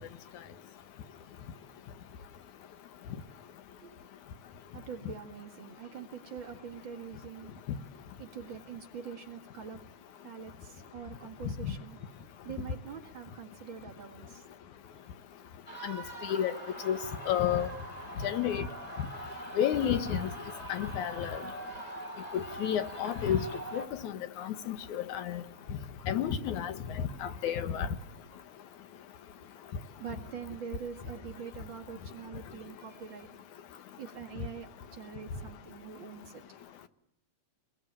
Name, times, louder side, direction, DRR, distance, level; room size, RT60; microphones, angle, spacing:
voice 1, 4.7-7.6 8.2-9.8 10.2-12.0 12.4-14.4 30.0-33.3 34.0-36.4, right 7 dB, 45° right, 2.4 m, -44 dB
sound 1, 15.7-23.9, right 1 dB, 15° left, 3.9 m, -43 dB
voice 2, 15.8-16.5 16.9-17.0 17.3-17.7 18.2-18.6 19.6-20.3 20.7-21.4 22.3-23.4 23.7-24.1 24.4-25.4 26.1-26.7 27.2-27.9, left 9 dB, 85° left, 2.6 m, -30 dB
25.5 x 21.0 x 8.9 m
omnidirectional pair, 3.3 m